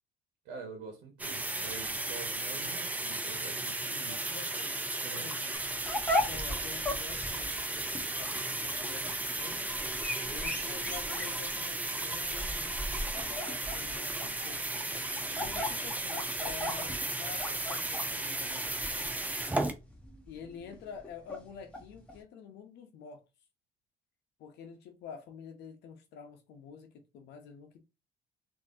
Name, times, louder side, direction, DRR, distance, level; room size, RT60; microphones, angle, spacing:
voice 1, 0.4-4.2 5.0-5.3, right 5 dB, 85° right, 1.2 m, -46 dB
sound 1, 1.2-19.7, right 2 dB, 10° right, 0.5 m, -35 dB
voice 2, 4.1-4.9 5.2-5.6 6.3-7.7 8.2-9.6 10.3-14.7 15.3-19.2 20.3-23.2 24.4-27.8, left 6 dB, 80° left, 0.9 m, -48 dB
sound 2, 5.5-22.2, left 1 dB, 5° left, 1.1 m, -38 dB
3.8 x 2.9 x 2.7 m
cardioid pair, 110°, 17 cm